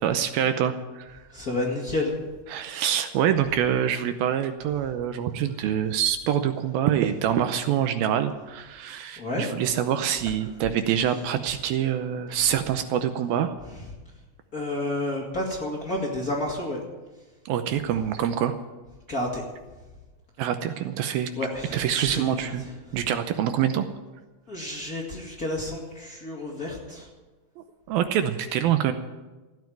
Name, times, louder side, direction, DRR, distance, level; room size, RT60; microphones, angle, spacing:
voice 1, 0.0-1.2 2.5-13.5 17.5-18.6 20.4-21.3 21.7-22.6 22.9-23.8 27.6-28.9, right 9 dB, 75° right, 9 dB, 2.4 m, -25 dB
voice 2, 1.3-2.1 9.2-9.4 12.3-12.4 14.5-16.8 19.1-19.4 21.1-22.7 24.5-27.1, left 1 dB, 30° left, -2 dB, 2.2 m, -30 dB
15.0 x 9.4 x 9.4 m, 1.2 s
omnidirectional pair, 4.5 m